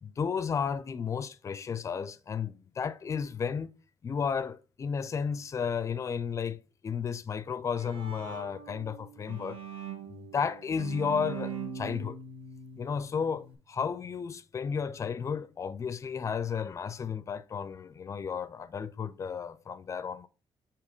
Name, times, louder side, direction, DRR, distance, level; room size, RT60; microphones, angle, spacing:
voice 1, 0.0-3.7 4.0-9.6 10.1-12.2 12.8-20.3, left 6 dB, 30° left, 0.4 m, -33 dB
Bowed string instrument, 7.5-13.5, right 6 dB, 60° right, 2.1 m, -42 dB
8.1 x 2.9 x 5.1 m
wide cardioid pair, 165°, 10 cm